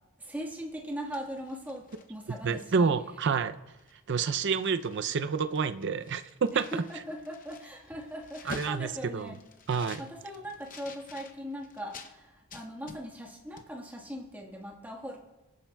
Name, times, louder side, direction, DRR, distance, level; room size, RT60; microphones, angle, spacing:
voice 1, 0.2-2.9 6.5-9.4 9.7-15.2, equal, 10° right, 0 dB, 1.5 m, -40 dB
sound 1, 0.8-2.9 3.3-3.5 3.8-5.0 5.3-12.1 12.5-13.3 13.6-13.7, left 3 dB, 40° left, 0.7 m, -49 dB
voice 2, 2.4-3.6 4.1-6.6 8.5-9.4 9.7-10.0, right 5 dB, 55° right, 11 dB, 0.5 m, -28 dB
25.0 x 10.0 x 2.3 m, 1.1 s
head